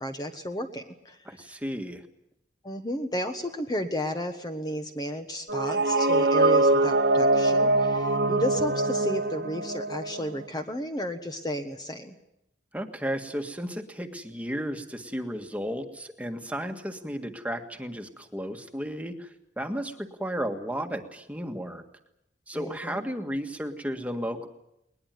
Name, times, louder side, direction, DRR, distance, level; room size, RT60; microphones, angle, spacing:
voice 1, 0.0-1.2 2.6-12.1 22.5-23.0, equal, 20° left, 5 dB, 1.3 m, -33 dB
voice 2, 1.2-2.0 12.7-21.8 22.5-24.5, equal, 10° right, 5 dB, 1.7 m, -34 dB
sound 1, 5.5-10.5, right 2 dB, 65° right, 1.7 m, -23 dB
21.0 x 20.5 x 9.2 m, 0.83 s
head